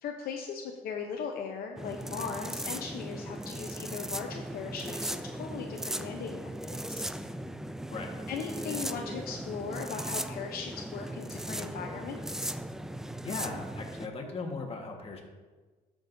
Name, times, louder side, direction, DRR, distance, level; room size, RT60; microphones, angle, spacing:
voice 1, 0.0-7.1 8.3-12.5, left 6 dB, 65° left, 2 dB, 0.8 m, -38 dB
sound 1, 1.8-14.1, right 1 dB, 5° right, 0.4 m, -38 dB
voice 2, 13.2-15.2, left 3 dB, 35° left, 1 dB, 1.5 m, -38 dB
12.5 x 6.2 x 2.7 m, 1.3 s
cardioid pair, 110°, 17 cm